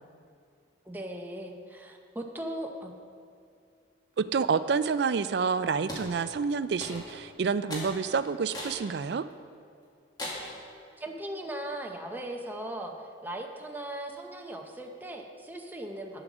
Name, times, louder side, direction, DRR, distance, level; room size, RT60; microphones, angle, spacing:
voice 1, 0.8-2.9 11.0-16.2, right 1 dB, 10° right, 2 dB, 0.7 m, -38 dB
voice 2, 4.2-9.3, right 5 dB, 60° right, 14 dB, 0.4 m, -28 dB
sound 1, 5.9-6.1 6.8-7.2 7.7-7.9 8.5-8.8 9.3-9.4 10.2-10.6, left 1 dB, 20° left, 1.9 m, -37 dB
9.1 x 7.7 x 6.0 m, 2.4 s
head